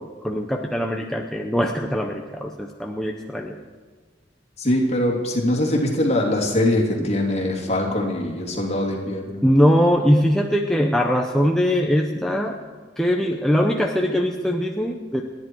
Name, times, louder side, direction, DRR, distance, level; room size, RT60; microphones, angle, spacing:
voice 1, 0.0-3.6 7.0-7.1 9.4-12.6 13.0-15.2, equal, ahead, 1 dB, 0.8 m, -21 dB
voice 2, 4.6-9.4, left 1 dB, 35° left, -2 dB, 3.1 m, -22 dB
30.0 x 10.5 x 4.6 m, 1.4 s
head